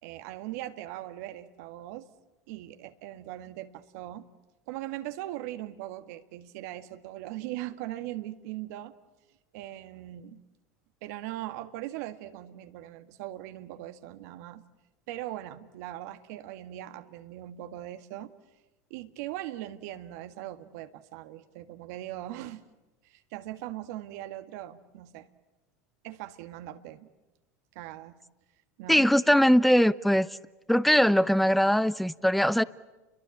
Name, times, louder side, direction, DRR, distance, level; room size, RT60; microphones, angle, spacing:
voice 1, 0.0-2.1 2.5-4.3 4.7-8.9 9.5-10.4 11.0-14.6 15.1-18.3 18.9-22.6 23.0-25.3 26.0-27.1 27.8-28.2 28.8-29.1, right 14 dB, 65° right, 1.8 m, -40 dB
voice 2, 28.9-30.3 30.7-32.6, equal, ahead, 0.8 m, -21 dB
29.5 x 23.0 x 8.6 m
hypercardioid pair, 90°, 9 cm